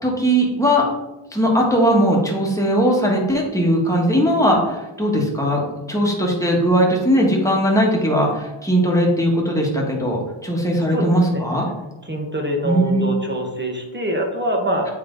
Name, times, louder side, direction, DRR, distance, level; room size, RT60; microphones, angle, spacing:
voice 1, 0.0-0.8 1.3-5.6 5.9-11.6 12.6-13.1, equal, 5° left, -2 dB, 1.7 m, -19 dB
voice 2, 10.9-11.5 12.0-14.9, right 1 dB, 20° right, 2 dB, 1.4 m, -24 dB
8.6 x 3.3 x 3.9 m, 1.0 s
wide cardioid pair, 60°, 49 cm